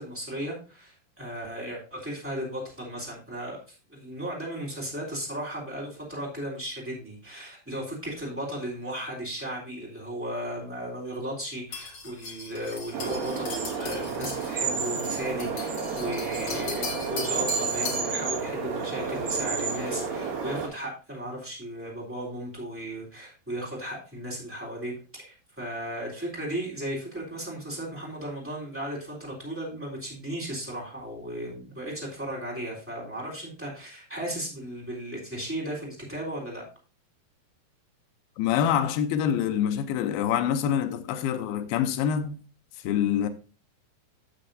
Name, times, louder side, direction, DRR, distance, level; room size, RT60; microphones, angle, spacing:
voice 1, 0.0-36.6, right 1 dB, 5° right, 2.6 m, -35 dB
sound 1, 11.7-18.1, left 4 dB, 55° left, 1.5 m, -38 dB
sound 2, 12.9-20.7, right 5 dB, 60° right, 3.2 m, -30 dB
voice 2, 38.4-42.3 42.8-43.3, left 9 dB, 80° left, 2.1 m, -25 dB
12.0 x 7.0 x 2.6 m
omnidirectional pair, 5.0 m